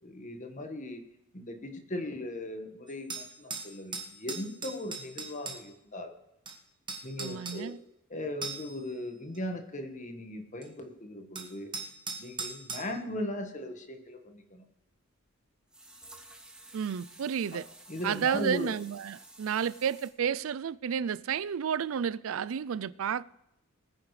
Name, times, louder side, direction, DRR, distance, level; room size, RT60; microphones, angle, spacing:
voice 1, 0.0-1.0 1.3-6.1 7.0-7.8 8.1-11.7 12.2-14.6 17.5-17.6 17.9-18.7, left 1 dB, 35° left, 1.5 m, -38 dB
sound 1, 2.9-5.6 6.5-6.6 6.9-7.6 8.4-8.8 9.3-9.4 10.6-10.7 11.4-12.8, right 4 dB, 20° right, 1.4 m, -39 dB
voice 2, 7.2-7.8 16.7-17.7 18.0-23.2, right 7 dB, 70° right, 0.4 m, -31 dB
sound 2, 14.9-15.0 15.7-20.1, right 2 dB, 5° right, 1.4 m, -52 dB
20.5 x 9.9 x 3.3 m
head